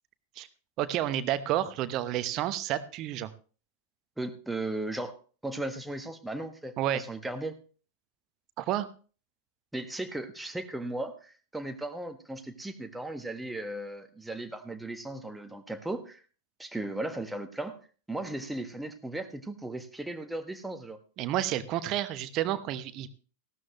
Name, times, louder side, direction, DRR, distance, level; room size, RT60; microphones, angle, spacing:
voice 1, 0.8-3.3 6.8-7.0 8.6-8.9 21.2-23.1, right 12 dB, 40° right, 13 dB, 0.9 m, -30 dB
voice 2, 4.2-7.6 9.7-16.2 16.6-17.8 18.1-21.0, right 2 dB, 5° right, 7 dB, 1.4 m, -36 dB
16.0 x 12.5 x 3.0 m, 0.38 s
figure-of-eight pair, 90°, 0 cm